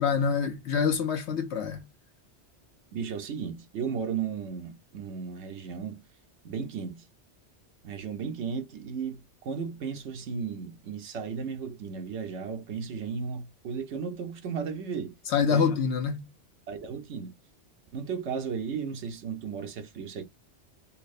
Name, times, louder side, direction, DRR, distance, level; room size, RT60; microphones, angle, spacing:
voice 1, 0.0-1.9 15.3-16.3, left 6 dB, 80° left, 1.1 m, -26 dB
voice 2, 2.9-6.0 6.4-7.1 7.8-15.2 15.5-15.7 16.7-17.4 17.9-20.3, right 6 dB, 80° right, 1.1 m, -35 dB
5.5 x 2.0 x 2.5 m
omnidirectional pair, 1.2 m